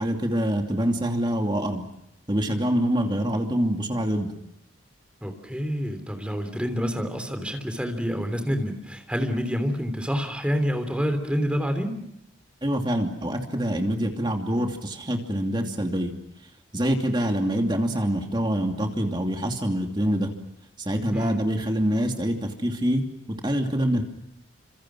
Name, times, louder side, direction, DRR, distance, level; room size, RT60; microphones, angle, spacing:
voice 1, 0.0-1.9 2.3-4.3 12.6-16.1 16.7-20.3 20.8-24.0, equal, 25° right, 3 dB, 2.7 m, -25 dB
voice 2, 5.2-11.9 21.1-21.4, equal, 5° right, 6 dB, 3.2 m, -27 dB
29.5 x 27.0 x 6.2 m, 0.80 s
head